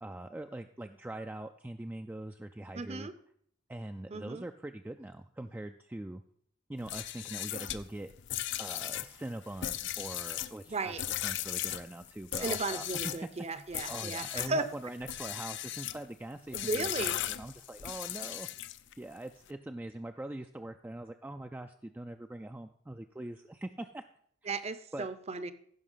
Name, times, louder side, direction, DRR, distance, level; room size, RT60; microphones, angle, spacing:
voice 1, 0.0-3.1 3.7-6.2 6.7-8.1 8.6-10.9 11.2-13.3 13.9-18.5 19.0-24.0 24.4-24.5 24.9-25.1, right 1 dB, 10° right, 6 dB, 0.3 m, -42 dB
voice 2, 2.7-3.1 4.1-4.4 10.7-11.0 12.3-14.7 16.5-17.2 24.4-25.5, right 3 dB, 30° right, 13 dB, 0.7 m, -35 dB
sound 1, 6.8-13.2 13.7-14.6 15.0-16.0 16.5-18.9, left 12 dB, 65° left, 0.5 m, -37 dB
15.0 x 5.7 x 5.6 m, 0.65 s
head